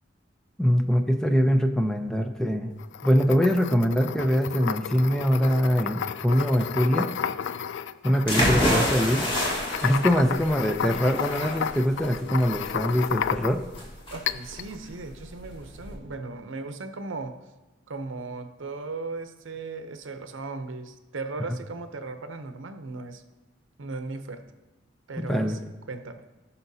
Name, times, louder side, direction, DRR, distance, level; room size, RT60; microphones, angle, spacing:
voice 1, 0.6-2.7 3.0-7.1 8.0-9.3 9.8-13.6 25.3-25.6, equal, 5° left, 5 dB, 0.5 m, -23 dB
sound 1, 2.8-13.8 14.3-14.7, left 8 dB, 70° left, 0.3 m, -32 dB
sound 2, 8.3-15.9, equal, 25° left, 1.6 m, -28 dB
voice 2, 14.1-17.4 17.9-23.2 23.8-24.5 25.1-25.6 25.9-26.2, right 3 dB, 85° right, 8 dB, 0.7 m, -37 dB
16.5 x 5.6 x 2.8 m, 1.1 s
head